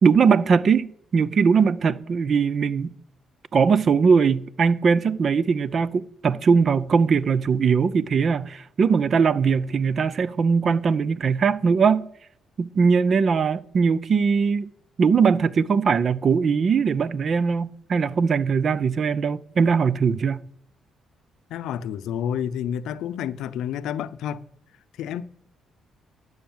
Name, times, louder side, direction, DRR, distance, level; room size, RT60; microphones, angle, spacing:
voice 1, 0.0-2.9 3.5-12.1 12.6-14.7 15.0-20.4, right 5 dB, 50° right, 0.6 m, -20 dB
voice 2, 21.5-24.4 25.0-25.2, left 9 dB, 85° left, 0.6 m, -29 dB
12.0 x 6.4 x 7.3 m
cardioid pair, 90°, 0 cm